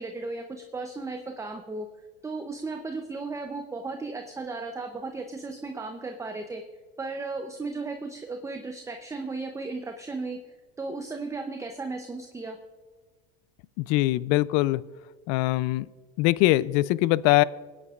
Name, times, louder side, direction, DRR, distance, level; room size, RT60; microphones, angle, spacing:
voice 1, 0.0-1.9 2.2-6.6 7.0-10.4 10.8-12.6, right 3 dB, 10° right, 5 dB, 0.6 m, -35 dB
voice 2, 13.8-14.8 15.3-15.9 16.2-17.4, left 17 dB, 60° left, 19 dB, 0.5 m, -22 dB
27.5 x 9.7 x 2.4 m, 1.4 s
supercardioid pair, 110°, 30 cm